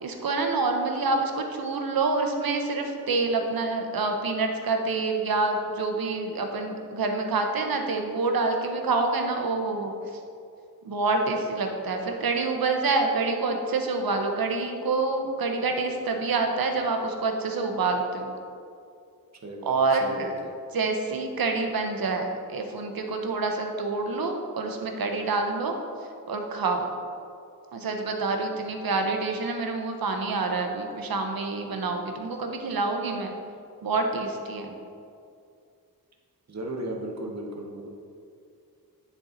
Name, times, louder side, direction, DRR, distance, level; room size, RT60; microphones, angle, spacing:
voice 1, 0.0-9.9 10.8-18.3 19.6-20.3 20.7-25.8 26.3-26.9 27.7-33.3 33.8-34.7, right 3 dB, 70° right, 3 dB, 1.0 m, -27 dB
voice 2, 19.4-20.3 36.5-37.9, right 1 dB, 45° right, 0 dB, 1.3 m, -35 dB
9.7 x 4.3 x 4.0 m, 2.4 s
cardioid pair, 75°, 37 cm